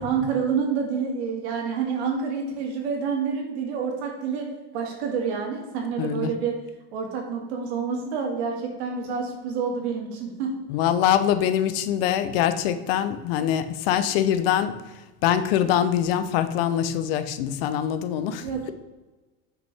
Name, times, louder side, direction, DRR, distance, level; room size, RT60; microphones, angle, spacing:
voice 1, 0.0-6.6 6.9-10.6 18.4-18.7, right 6 dB, 80° right, 1 dB, 2.2 m, -28 dB
voice 2, 6.0-6.3 10.7-14.8 15.2-18.7, left 10 dB, 65° left, 12 dB, 0.7 m, -24 dB
8.0 x 5.9 x 3.5 m, 1.2 s
supercardioid pair, 170°, 32 cm